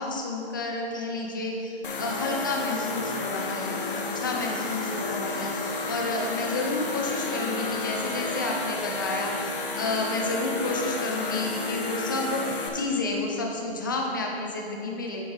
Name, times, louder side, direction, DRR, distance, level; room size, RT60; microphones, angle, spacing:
voice 1, 0.0-15.3, left 2 dB, 20° left, 0 dB, 0.5 m, -30 dB
sound 1, 1.8-12.7, left 3 dB, 50° left, 1.1 m, -31 dB
9.3 x 7.0 x 3.4 m, 2.4 s
hypercardioid pair, 155°, 33 cm